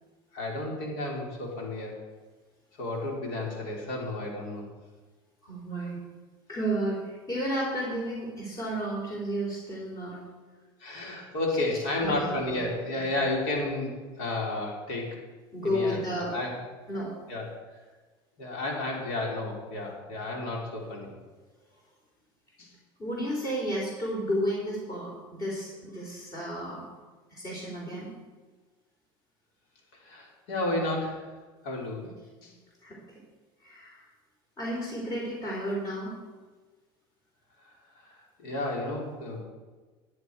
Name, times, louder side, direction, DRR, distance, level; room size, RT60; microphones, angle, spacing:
voice 1, 0.3-2.0 2.8-4.7 10.8-15.1 15.6-16.6 17.3-17.5 18.4-21.1 22.6-22.7 30.0-31.3 31.6-32.1 32.4-32.5 38.1-39.4, left 2 dB, 85° left, -1 dB, 3.5 m, -32 dB
voice 2, 5.4-6.0 6.5-10.2 12.0-12.6 12.9-13.0 15.5-16.4 16.9-17.2 23.0-26.9 27.3-28.1 32.8-33.0 33.6-34.0 34.6-36.2, equal, 30° left, -3 dB, 3.5 m, -32 dB
11.0 x 9.2 x 4.7 m, 1.3 s
supercardioid pair, 110°, 12 cm